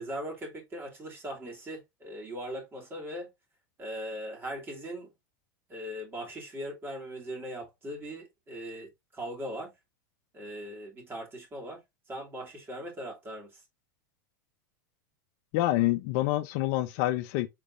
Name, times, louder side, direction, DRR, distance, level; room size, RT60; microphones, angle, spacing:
voice 1, 0.0-3.3 3.8-5.1 5.7-9.7 10.3-11.8 12.1-13.6, equal, 20° right, 2.2 m, -39 dB
voice 2, 15.5-17.5, left 16 dB, 55° left, 0.6 m, -27 dB
5.1 x 3.5 x 2.5 m
supercardioid pair, 125°, 10 cm